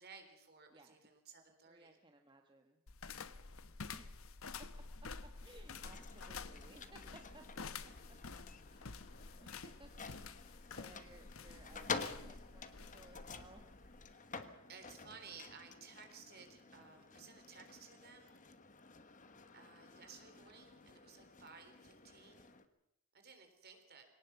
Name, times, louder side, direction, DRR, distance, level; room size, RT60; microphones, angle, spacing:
voice 1, 0.0-1.9 14.7-18.4 19.5-22.5 23.1-24.0, right 5 dB, 50° right, 5 dB, 3.8 m, -57 dB
voice 2, 1.7-2.8 3.9-4.6 5.4-7.9 8.7-9.1 9.4-10.1 10.6-13.7, right 2 dB, 20° right, 4 dB, 1.3 m, -61 dB
sound 1, 2.9-14.1, left 4 dB, 75° left, 1.0 m, -50 dB
sound 2, 5.5-22.6, left 4 dB, 35° left, 1.3 m, -50 dB
22.0 x 18.5 x 7.0 m, 0.76 s
head